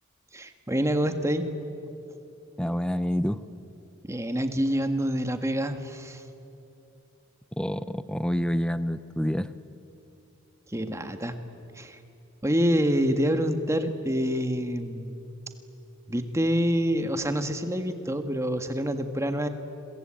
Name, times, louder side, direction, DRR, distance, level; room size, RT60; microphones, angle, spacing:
voice 1, 0.3-1.4 4.1-6.2 10.7-11.4 11.8-12.0 12.4-15.2 16.1-19.5, equal, 15° right, 7 dB, 1.6 m, -27 dB
voice 2, 2.6-3.4 7.6-9.5, equal, 5° left, 13 dB, 0.7 m, -27 dB
30.0 x 22.5 x 8.8 m, 2.9 s
head